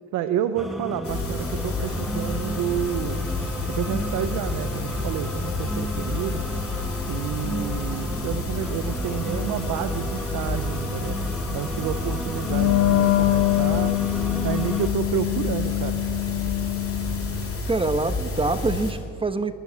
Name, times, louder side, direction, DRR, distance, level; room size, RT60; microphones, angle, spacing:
voice 1, 0.1-3.2 3.7-6.4 7.1-11.2 11.5-13.9 14.4-16.0, right 10 dB, 90° right, 10 dB, 0.7 m, -30 dB
sound 1, 0.6-14.9, equal, ahead, 1.4 m, -33 dB
sound 2, 1.0-18.9, left 3 dB, 50° left, 4.9 m, -30 dB
Wind instrument woodwind instrument, 12.4-17.5, left 19 dB, 85° left, 0.9 m, -24 dB
voice 2, 17.7-19.5, right 3 dB, 15° right, 10 dB, 1.0 m, -25 dB
21.0 x 7.4 x 8.4 m, 2.2 s
cardioid pair, 90°, 30 cm